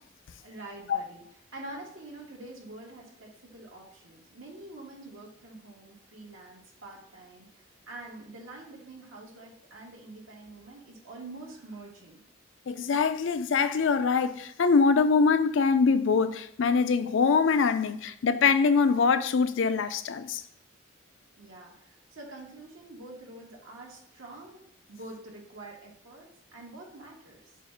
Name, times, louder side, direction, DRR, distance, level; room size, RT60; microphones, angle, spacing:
voice 1, 0.4-1.2 1.5-12.2 21.3-24.6 24.9-27.4, right 2 dB, 85° right, 1.7 m, -46 dB
voice 2, 12.7-20.4, left 5 dB, 75° left, 0.4 m, -23 dB
7.2 x 2.4 x 5.5 m
head